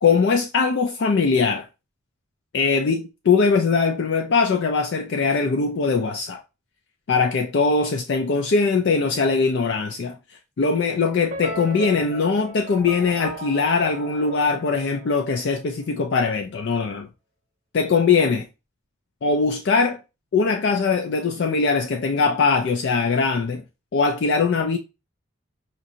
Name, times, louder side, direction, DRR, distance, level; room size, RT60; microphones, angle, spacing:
voice 1, 0.0-1.7 2.5-6.4 7.1-17.1 17.7-18.5 19.2-20.0 20.3-23.6 23.9-24.8, left 4 dB, 55° left, 0.4 m, -21 dB
sound 1, 11.3-15.6, right 1 dB, 45° right, 0.7 m, -37 dB
5.1 x 2.5 x 2.7 m
head